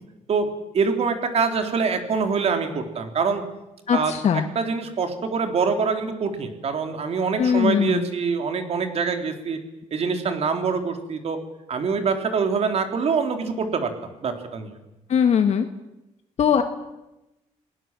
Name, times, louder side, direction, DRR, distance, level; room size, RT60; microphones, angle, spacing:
voice 1, 0.3-3.4 3.9-9.6 9.9-11.4 11.7-14.7, right 5 dB, 50° right, 6 dB, 3.7 m, -25 dB
voice 2, 3.9-4.4 7.4-8.1 15.1-15.6 16.4-16.6, left 7 dB, 60° left, 7 dB, 1.6 m, -20 dB
28.0 x 19.0 x 7.6 m, 0.96 s
cardioid pair, 110°, 13 cm